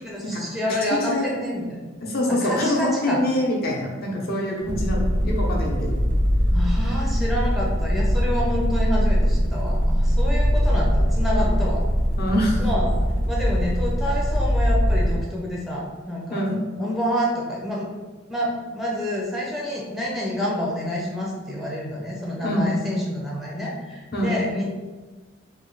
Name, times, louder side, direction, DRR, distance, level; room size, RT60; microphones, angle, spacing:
voice 1, 0.0-1.8 2.3-3.2 6.5-11.8 12.6-13.0 13.3-16.5 16.8-17.9 18.3-24.7, equal, ahead, -3 dB, 0.5 m, -28 dB
voice 2, 2.0-6.0 11.3-11.5 12.2-12.7 16.3-16.6 22.4-22.8 24.1-24.3, left 1 dB, 50° left, -2 dB, 0.7 m, -25 dB
sound 1, 4.6-15.2, equal, 90° right, 0.9 m, -21 dB
3.0 x 2.3 x 3.7 m, 1.3 s
head